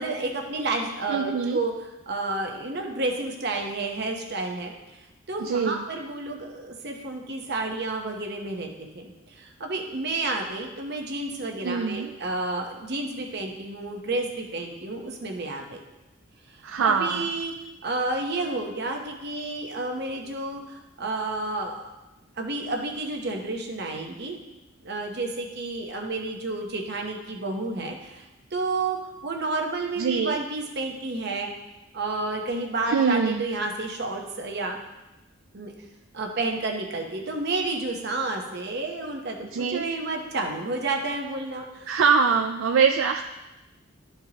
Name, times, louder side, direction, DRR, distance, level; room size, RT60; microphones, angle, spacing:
voice 1, 0.0-1.7 2.1-5.0 5.3-15.8 16.5-17.5 17.8-21.9 22.4-24.4 24.8-28.3 28.5-29.0 29.2-31.5 31.9-34.8 35.5-35.7 36.1-42.0, right 2 dB, 55° right, 2 dB, 1.0 m, -30 dB
voice 2, 1.1-1.6 5.4-5.8 11.6-12.1 16.6-17.3 30.0-30.4 32.9-33.4 39.5-39.8 41.9-43.2, right 6 dB, 75° right, 4 dB, 0.4 m, -23 dB
12.0 x 4.5 x 2.9 m, 1.0 s
head